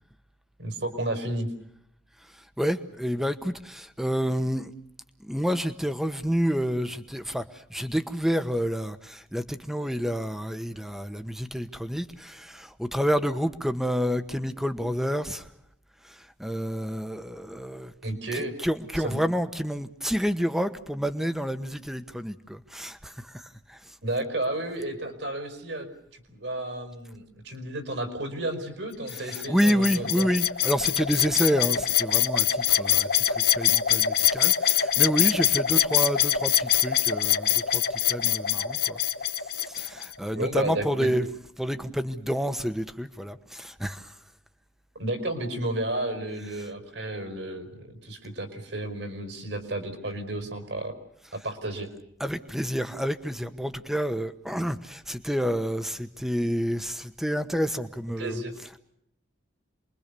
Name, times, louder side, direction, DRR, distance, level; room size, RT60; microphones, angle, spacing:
voice 1, 0.6-1.5 18.0-18.5 19.0-19.2 24.0-30.3 40.3-41.1 45.0-50.9 51.3-51.9 58.2-58.5, right 1 dB, 70° right, 7 dB, 5.3 m, -32 dB
voice 2, 2.2-4.7 5.2-15.5 16.0-17.9 18.3-24.0 29.1-39.0 39.4-44.2 46.4-46.7 51.2-51.5 52.2-58.8, equal, ahead, 10 dB, 1.1 m, -29 dB
sound 1, 29.1-40.1, left 10 dB, 55° left, 1.3 m, -24 dB
28.0 x 22.5 x 6.9 m, 0.74 s
head